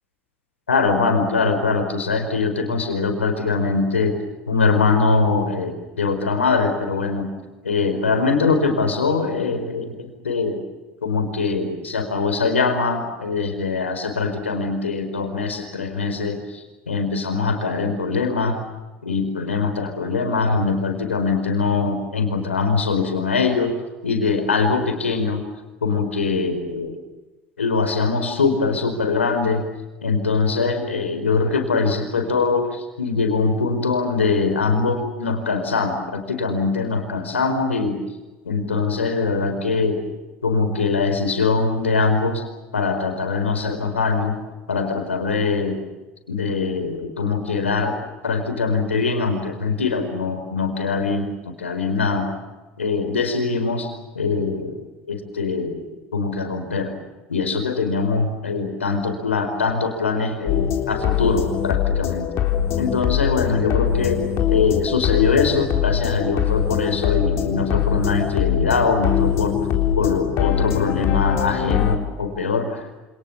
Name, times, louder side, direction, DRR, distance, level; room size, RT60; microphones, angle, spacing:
voice 1, 0.7-4.1 4.5-7.3 7.6-10.6 11.0-18.6 19.0-23.8 24.0-25.4 25.8-27.0 27.6-29.6 30.0-38.0 38.4-40.0 40.4-42.4 42.7-44.4 44.7-45.8 46.3-48.0 48.2-52.3 52.8-53.9 54.1-54.8 55.1-55.8 56.1-57.0 57.3-62.3 62.8-64.2 64.5-69.6 69.9-72.9, left 4 dB, 80° left, 7 dB, 4.9 m, -22 dB
sound 1, 60.5-72.0, left 9 dB, 45° left, 3.8 m, -22 dB
28.5 x 27.5 x 7.3 m, 1.1 s
figure-of-eight pair, 70°, 7 cm